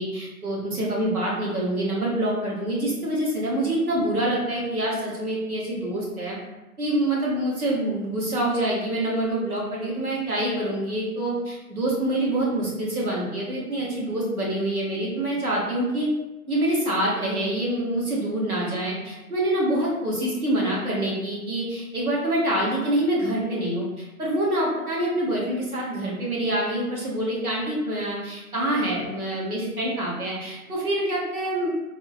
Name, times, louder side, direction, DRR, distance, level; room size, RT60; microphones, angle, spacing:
voice 1, 0.0-6.4 6.8-16.1 16.5-23.8 24.2-31.7, right 1 dB, 70° right, -5 dB, 1.3 m, -26 dB
3.5 x 2.1 x 2.8 m, 1.0 s
figure-of-eight pair, 155°, 45 cm